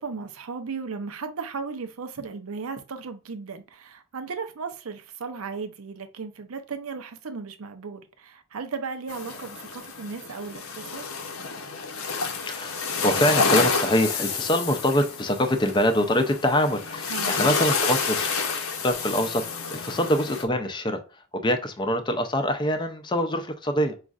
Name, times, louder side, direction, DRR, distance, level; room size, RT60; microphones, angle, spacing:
voice 1, 0.0-11.1 17.1-17.3, right 5 dB, 90° right, 0.6 m, -36 dB
sound 1, 9.1-20.4, left 4 dB, 85° left, 0.7 m, -29 dB
voice 2, 12.5-18.3 18.8-24.0, equal, 20° left, 0.4 m, -24 dB
5.1 x 2.4 x 2.3 m
head